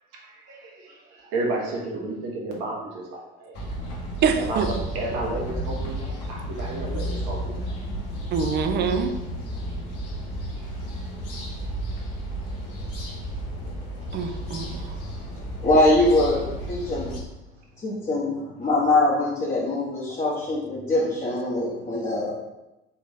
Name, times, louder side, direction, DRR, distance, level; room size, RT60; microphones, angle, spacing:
voice 1, 0.2-3.6 4.4-7.5 10.9-11.0, right 2 dB, 55° right, -2 dB, 1.2 m, -32 dB
sound 1, 3.5-17.2, equal, 50° left, 1.3 m, -32 dB
voice 2, 4.2-4.7 8.3-9.1 14.1-14.9, right 6 dB, 35° right, 7 dB, 0.5 m, -25 dB
voice 3, 15.6-16.4 16.7-17.1 17.8-22.3, left 2 dB, 25° left, -6 dB, 1.1 m, -22 dB
4.1 x 3.0 x 3.7 m, 0.98 s
figure-of-eight pair, 60°, 31 cm